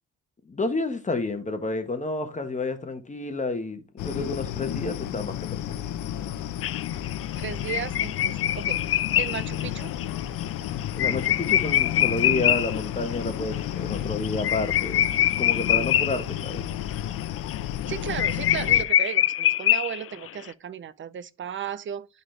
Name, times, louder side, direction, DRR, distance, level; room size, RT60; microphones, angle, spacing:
voice 1, 0.5-5.6 10.9-15.0 15.4-16.6, left 2 dB, 25° left, 1.2 m, -30 dB
sound 1, 4.0-18.8, left 11 dB, 80° left, 0.7 m, -32 dB
sound 2, 6.6-12.8 13.1-13.2 13.5-13.6 13.9-16.5 16.9-17.2 17.5-17.6 17.9-18.0 18.2-20.3, left 12 dB, 50° left, 0.4 m, -24 dB
voice 2, 7.4-9.9 17.9-22.1, right 9 dB, 40° right, 0.6 m, -35 dB
11.0 x 4.1 x 3.3 m
cardioid pair, 90°, 30 cm